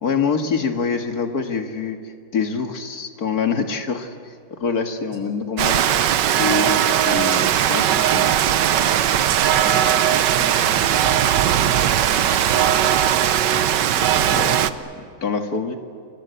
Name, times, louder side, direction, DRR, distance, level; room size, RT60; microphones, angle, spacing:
voice 1, 0.0-8.3 14.0-15.8, left 5 dB, 50° left, 6 dB, 2.3 m, -26 dB
Rain, 5.6-14.7, right 10 dB, 65° right, 1.4 m, -18 dB
voice 2, 9.2-12.2, right 1 dB, 80° right, 2 dB, 6.3 m, -39 dB
28.5 x 22.5 x 8.2 m, 2.5 s
omnidirectional pair, 2.2 m